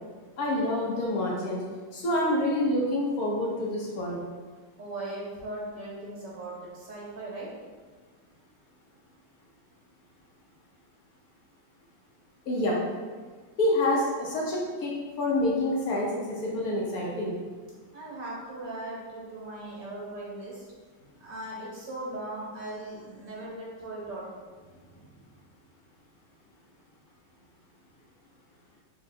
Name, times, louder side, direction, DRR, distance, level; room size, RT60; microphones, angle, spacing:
voice 1, 0.4-1.6 1.9-4.2 12.5-12.8 13.6-17.4, left 1 dB, 65° left, -3 dB, 1.1 m, -27 dB
voice 2, 4.8-7.5 17.9-20.6 21.2-24.3 24.9-25.0, right 2 dB, 75° right, -6 dB, 1.8 m, -38 dB
4.0 x 2.4 x 4.3 m, 1.5 s
omnidirectional pair, 1.9 m